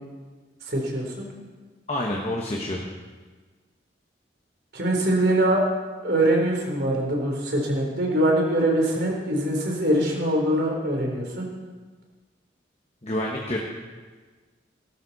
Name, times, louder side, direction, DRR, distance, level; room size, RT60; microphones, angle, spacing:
voice 1, 0.7-1.3 4.7-5.6 6.0-11.5, right 1 dB, 60° right, 0 dB, 3.7 m, -23 dB
voice 2, 1.9-2.8 13.0-13.6, left 1 dB, 35° left, -1 dB, 1.3 m, -28 dB
18.5 x 13.0 x 4.2 m, 1.4 s
head